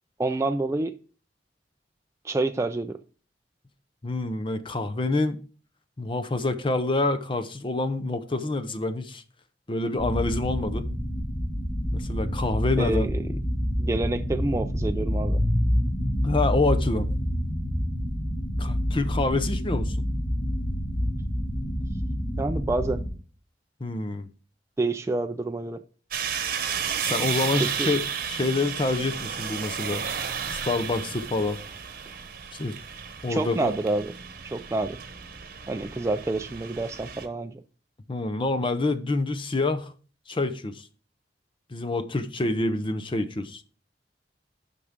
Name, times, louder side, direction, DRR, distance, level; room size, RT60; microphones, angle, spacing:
voice 1, 0.2-0.9 2.2-3.0 12.8-13.2 13.8-15.4 22.4-23.0 24.8-25.8 27.6-27.9 33.3-34.1 34.4-35.0 35.7-37.5, right 2 dB, 15° right, 0.3 m, -28 dB
voice 2, 4.0-5.4 6.0-9.2 9.7-10.9 11.9-13.1 16.2-17.1 18.6-20.0 23.8-24.3 27.0-30.0 30.5-31.6 32.5-32.8 33.2-33.7 38.1-39.9 40.3-40.9 41.7-43.6, left 2 dB, 30° left, 0.6 m, -27 dB
sound 1, 10.0-23.1, equal, 80° left, 3.7 m, -27 dB
sound 2, 26.1-37.3, right 7 dB, 55° right, 1.0 m, -33 dB
9.9 x 5.8 x 3.6 m
head